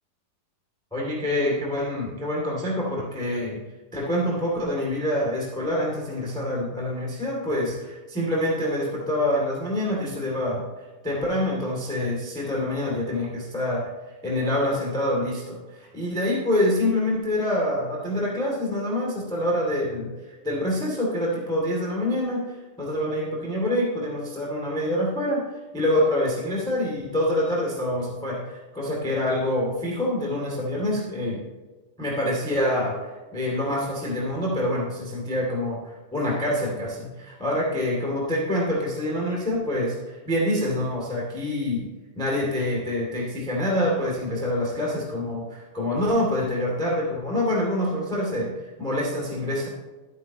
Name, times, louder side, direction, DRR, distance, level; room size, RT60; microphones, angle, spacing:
voice 1, 0.9-3.6 3.9-10.6 11.0-13.9 14.2-31.4 32.0-33.0 33.3-41.9 42.1-49.7, left 1 dB, ahead, -3 dB, 1.7 m, -26 dB
12.5 x 9.4 x 3.0 m, 1.3 s
omnidirectional pair, 4.2 m